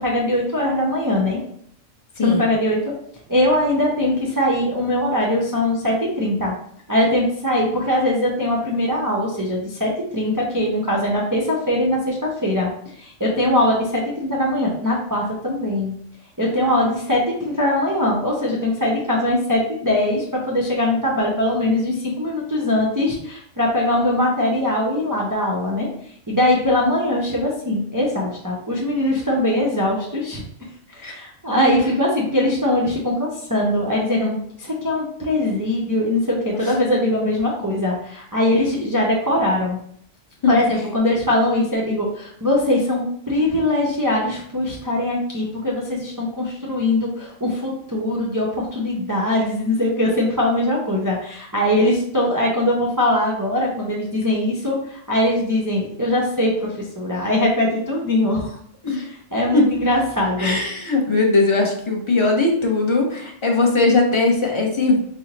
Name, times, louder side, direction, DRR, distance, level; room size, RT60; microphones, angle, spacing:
voice 1, 0.0-1.4 2.2-2.8 3.3-6.5 6.9-12.7 13.0-15.9 16.4-25.9 26.3-30.4 30.9-39.8 40.5-58.6 58.9-60.6, left 1 dB, 30° right, -4 dB, 0.4 m, -21 dB
voice 2, 2.2-2.5 31.0-31.2 36.5-36.7 40.4-40.6 58.8-59.0 59.5-59.7 60.4-65.0, left 3 dB, 35° left, 1 dB, 0.5 m, -19 dB
4.4 x 2.0 x 3.8 m, 0.68 s
omnidirectional pair, 1.3 m